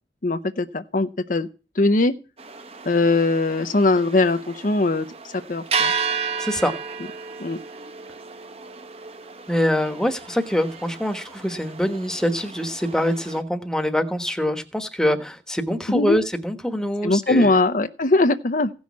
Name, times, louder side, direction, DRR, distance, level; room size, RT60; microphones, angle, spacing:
voice 1, 0.2-1.5 1.7-2.1 2.9-5.9 7.4-7.6 15.9-16.2 17.0-18.7, left 2 dB, 45° left, 9 dB, 0.7 m, -21 dB
sound 1, 2.4-13.4, right 5 dB, 35° right, 1.1 m, -33 dB
voice 2, 6.4-6.7 9.5-17.6, equal, 5° left, 7 dB, 1.2 m, -24 dB
16.0 x 6.2 x 8.3 m, 0.34 s
head